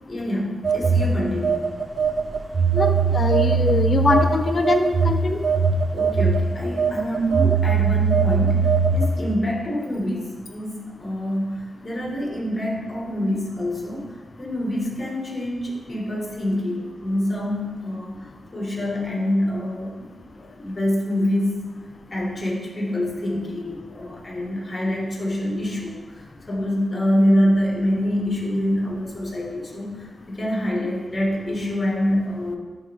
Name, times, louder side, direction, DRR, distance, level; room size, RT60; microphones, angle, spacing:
voice 1, 0.1-1.7 5.9-21.6 22.1-32.6, equal, 30° left, -2 dB, 1.8 m, -26 dB
Telephone, 0.6-9.3, right 5 dB, 55° right, 0.5 m, -20 dB
voice 2, 2.7-5.4, left 3 dB, 50° left, 6 dB, 0.5 m, -22 dB
10.5 x 3.5 x 3.6 m, 1.3 s
wide cardioid pair, 85°, 0 cm